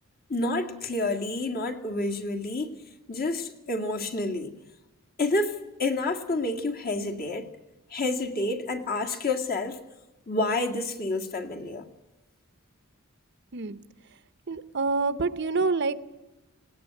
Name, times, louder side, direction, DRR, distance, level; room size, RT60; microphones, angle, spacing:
voice 1, 0.3-2.8 3.1-4.5 5.2-7.5 7.9-9.8 10.3-11.9, left 2 dB, 45° left, 2.0 m, -29 dB
voice 2, 13.5-13.8 14.5-16.0, right 4 dB, 55° right, 0.8 m, -27 dB
19.0 x 17.5 x 9.1 m
head